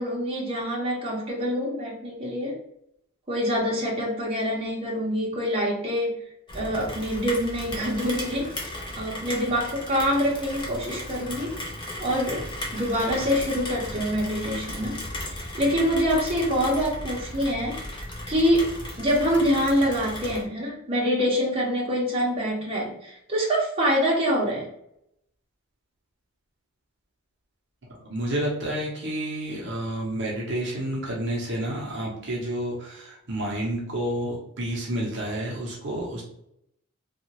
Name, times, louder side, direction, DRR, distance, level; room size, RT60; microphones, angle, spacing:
voice 1, 0.0-2.6 3.3-6.2 6.5-8.7 9.0-11.6 12.0-12.4 12.7-17.8 18.3-18.7 19.0-24.7, equal, 25° right, -5 dB, 0.9 m, -25 dB
Rain, 6.5-20.4, left 1 dB, 20° left, 0.6 m, -36 dB
voice 2, 28.0-36.2, right 1 dB, 55° right, -3 dB, 0.7 m, -30 dB
2.7 x 2.4 x 2.9 m, 0.77 s
head